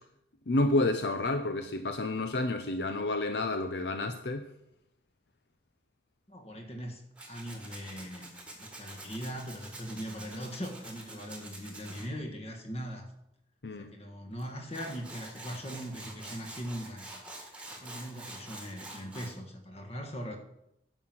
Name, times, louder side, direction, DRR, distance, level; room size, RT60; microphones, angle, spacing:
voice 1, 0.5-4.4 13.6-13.9, left 2 dB, 60° left, 8 dB, 0.6 m, -30 dB
voice 2, 6.3-7.0 7.3-13.1 13.8-17.1 17.7-20.4, equal, 30° left, 4 dB, 1.6 m, -40 dB
Tools, 7.2-12.1 14.4-14.5 14.7-19.3, right 2 dB, 5° right, 1.6 m, -46 dB
10.0 x 5.9 x 7.8 m, 0.81 s
head